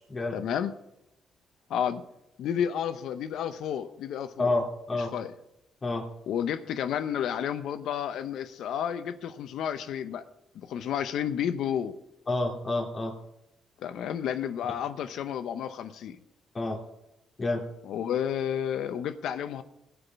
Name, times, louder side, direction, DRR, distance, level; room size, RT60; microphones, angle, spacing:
voice 1, 0.3-0.7 1.7-2.0 2.4-4.5 5.1-5.3 6.3-10.2 10.7-11.9 13.8-16.2 17.8-19.6, left 9 dB, 80° left, 11 dB, 0.8 m, -31 dB
voice 2, 4.4-5.1 5.8-6.0 12.3-13.1 16.5-16.8 17.4-17.6, left 2 dB, 30° left, 0 dB, 3.2 m, -28 dB
19.5 x 7.0 x 4.7 m, 0.87 s
cardioid pair, 90°, 0 cm